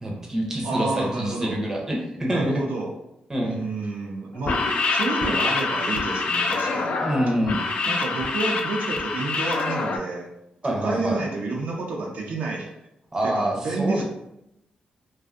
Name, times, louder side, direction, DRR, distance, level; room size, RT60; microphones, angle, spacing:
voice 1, 0.0-2.6 3.3-3.6 7.0-7.6 10.6-11.2 13.1-14.0, right 1 dB, 20° right, -1 dB, 0.6 m, -26 dB
voice 2, 0.6-1.6 2.3-2.9 3.4-7.0 7.3-7.4 7.9-10.3 10.7-12.7 13.2-14.0, right 3 dB, 75° right, -1 dB, 0.5 m, -29 dB
sound 1, 4.4-10.0, left 3 dB, 55° left, 0.3 m, -25 dB
2.4 x 2.3 x 2.4 m, 0.83 s
cardioid pair, 100°, 3 cm